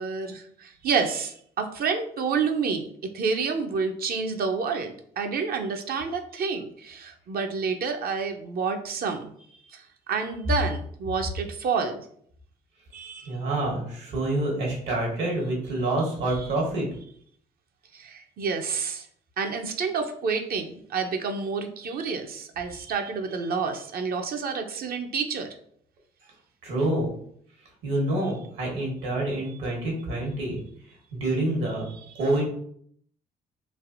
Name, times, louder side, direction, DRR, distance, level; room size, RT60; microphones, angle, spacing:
voice 1, 0.0-2.9 3.1-9.3 9.7-12.1 12.9-13.4 16.3-16.5 17.9-19.1 19.4-25.5 31.9-32.1, right 5 dB, 55° right, 5 dB, 0.5 m, -29 dB
voice 2, 13.2-16.9 26.6-27.1 27.8-30.6 31.1-31.9 32.2-32.5, right 2 dB, 75° right, -2 dB, 1.3 m, -27 dB
3.2 x 2.6 x 2.5 m, 0.64 s
hypercardioid pair, 55°, 19 cm